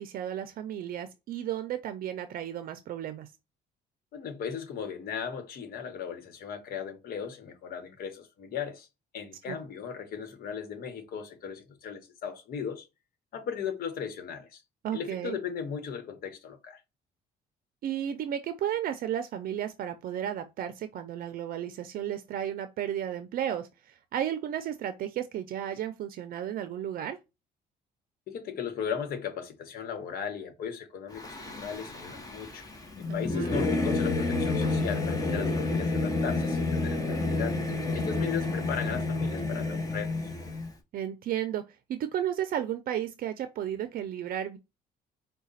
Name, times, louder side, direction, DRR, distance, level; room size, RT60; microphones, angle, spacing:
voice 1, 0.0-3.3 9.5-9.6 14.8-15.4 17.8-27.2 33.1-33.5 40.9-41.6 41.9-44.6, right 10 dB, 60° right, 0.5 m, -33 dB
voice 2, 4.1-8.9 9.1-12.9 13.3-14.6 14.9-16.8 28.3-32.6 33.1-37.6 37.9-40.1, left 7 dB, 60° left, 1.1 m, -37 dB
Singing / Musical instrument, 31.1-40.7, left 2 dB, 20° left, 1.0 m, -30 dB
4.9 x 2.3 x 4.0 m
cardioid pair, 110°, 17 cm